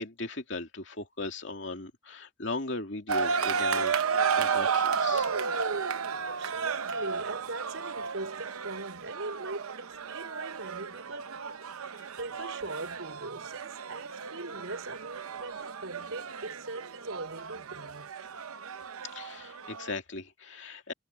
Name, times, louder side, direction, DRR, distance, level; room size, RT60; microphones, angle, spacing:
voice 1, 0.0-3.9 4.4-5.3 19.1-20.9, left 2 dB, 55° left, 2.8 m, -38 dB
sound 1, 3.1-19.9, right 6 dB, 90° right, 0.8 m, -33 dB
voice 2, 6.2-18.1, right 2 dB, 70° right, 4.9 m, -41 dB
head